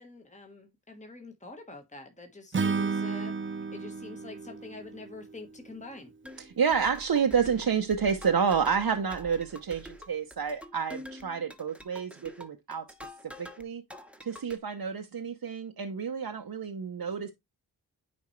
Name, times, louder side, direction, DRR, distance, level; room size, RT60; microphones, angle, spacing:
voice 1, 0.0-6.1, left 2 dB, 15° left, 1.3 m, -46 dB
Acoustic guitar / Strum, 2.5-5.8, right 4 dB, 30° right, 0.5 m, -32 dB
sound 1, 6.2-13.6 13.9-14.6, equal, 5° right, 1.1 m, -46 dB
voice 2, 6.4-12.8 13.4-13.8 14.2-17.3, right 6 dB, 65° right, 0.8 m, -29 dB
9.6 x 4.3 x 3.2 m
wide cardioid pair, 50°, 40 cm